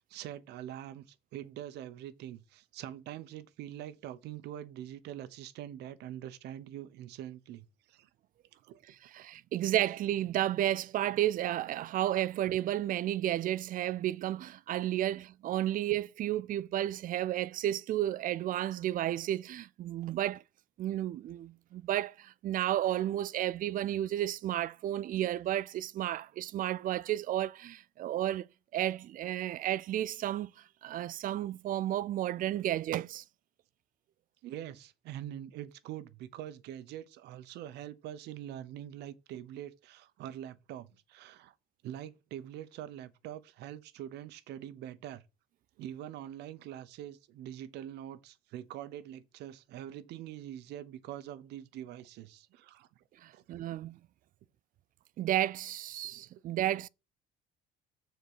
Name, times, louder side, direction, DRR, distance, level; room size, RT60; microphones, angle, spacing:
voice 1, 0.0-8.1 8.5-8.8 15.1-15.2 20.1-20.2 34.4-41.5 41.8-45.2 45.8-52.9 53.3-53.4 56.0-56.2, right 11 dB, 80° right, 0.8 m, -44 dB
voice 2, 9.1-20.4 20.8-28.5 28.7-30.5 30.8-33.2 53.2-54.0 55.2-56.9, right 12 dB, 55° right, 0.4 m, -32 dB
6.9 x 4.4 x 6.6 m
cardioid pair, 110°, 17 cm